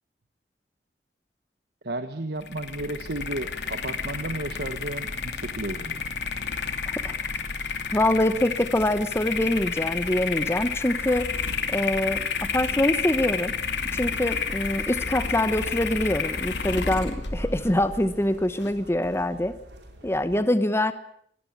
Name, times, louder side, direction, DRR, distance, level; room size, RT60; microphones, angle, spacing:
voice 1, 1.8-6.0 20.3-20.4, right 2 dB, 65° right, 9 dB, 1.4 m, -33 dB
sound 1, 2.4-18.7, left 5 dB, 80° left, 2.7 m, -31 dB
voice 2, 7.9-11.3 11.7-13.5 13.9-19.5 20.0-20.9, left 1 dB, 15° left, 12 dB, 1.0 m, -24 dB
sound 2, 15.2-20.4, right 1 dB, 85° right, 5.0 m, -47 dB
23.5 x 18.5 x 8.6 m, 0.67 s
head